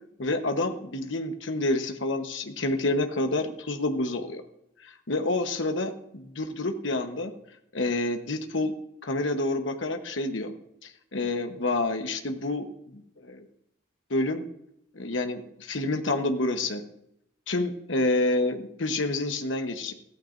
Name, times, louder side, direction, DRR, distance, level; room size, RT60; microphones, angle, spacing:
voice 1, 0.2-4.4 4.8-7.3 7.7-8.7 9.0-10.5 10.8-12.7 12.9-13.5 14.1-14.4 14.9-16.8 17.5-19.9, left 2 dB, 75° left, 6 dB, 1.1 m, -28 dB
14.5 x 14.0 x 2.6 m, 0.77 s
head